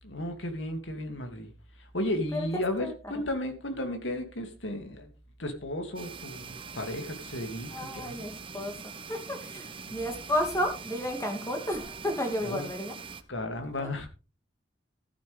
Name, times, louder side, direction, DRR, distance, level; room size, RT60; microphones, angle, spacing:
voice 1, 0.0-1.5 1.8-5.1 5.4-8.1 12.4-12.7 13.3-14.1, left 1 dB, 85° left, 2.6 m, -34 dB
sound 1, 6.0-13.2, right 5 dB, 30° right, 1.0 m, -43 dB
voice 2, 7.7-12.9, equal, 15° left, 2.7 m, -32 dB
14.0 x 10.0 x 3.5 m
head